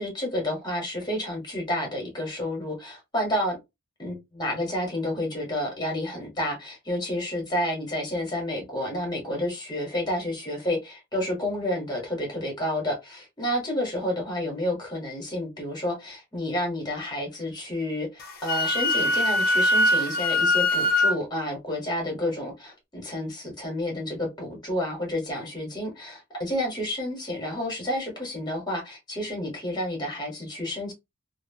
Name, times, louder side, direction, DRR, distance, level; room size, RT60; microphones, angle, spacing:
voice 1, 0.0-3.6 4.0-30.9, left 1 dB, 20° left, 1.1 m, -30 dB
Wind instrument woodwind instrument, 18.2-21.1, left 1 dB, 45° left, 0.6 m, -22 dB
2.8 x 2.0 x 2.6 m
head